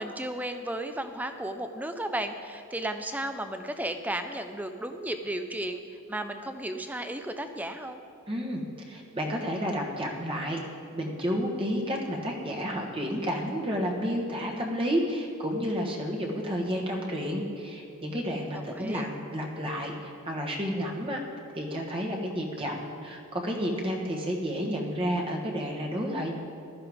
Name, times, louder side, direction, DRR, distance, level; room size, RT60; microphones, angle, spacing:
voice 1, 0.0-5.8 6.1-8.0 18.5-19.1, right 1 dB, 5° right, 7 dB, 0.6 m, -34 dB
voice 2, 8.3-8.6 8.9-10.6 10.9-21.2 21.5-26.3, equal, 25° right, -1 dB, 1.3 m, -31 dB
15.5 x 12.5 x 3.6 m, 2.5 s
head